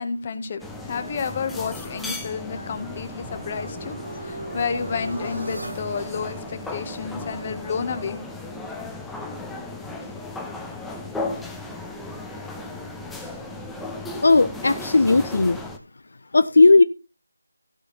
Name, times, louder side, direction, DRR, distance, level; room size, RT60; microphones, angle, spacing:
voice 1, 0.0-8.2, left 5 dB, 25° left, 9 dB, 1.6 m, -30 dB
sound 1, 0.6-15.8, left 2 dB, 5° left, 1.1 m, -35 dB
sound 2, 1.9-7.0, right 1 dB, 90° right, 6.6 m, -39 dB
voice 2, 14.2-15.6 16.3-16.8, left 3 dB, 60° left, 13 dB, 0.8 m, -16 dB
15.5 x 6.3 x 4.2 m, 0.29 s
figure-of-eight pair, 165°, 0 cm